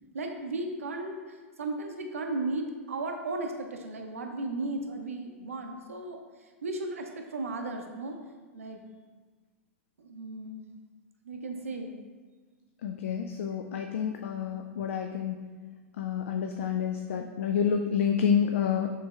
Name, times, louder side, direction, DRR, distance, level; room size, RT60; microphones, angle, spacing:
voice 1, 0.1-8.2 8.5-8.8 10.0-10.6 11.2-11.9, right 2 dB, 90° right, 3 dB, 0.5 m, -35 dB
voice 2, 12.8-15.4 16.0-18.9, left 7 dB, 70° left, 4 dB, 0.3 m, -29 dB
6.8 x 3.2 x 2.4 m, 1.4 s
hypercardioid pair, 115°, 7 cm